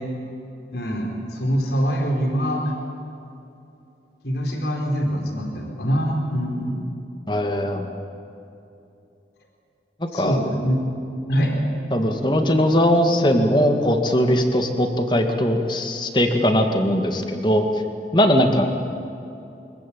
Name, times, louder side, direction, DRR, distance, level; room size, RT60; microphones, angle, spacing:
voice 1, 0.7-2.7 4.2-6.8 10.1-10.8 11.3-11.5, equal, 75° left, 2 dB, 4.2 m, -24 dB
voice 2, 7.3-7.9 10.1-10.4 11.9-17.7 18.1-18.7, equal, 25° left, 5 dB, 2.0 m, -20 dB
24.0 x 22.0 x 8.7 m, 2.7 s
head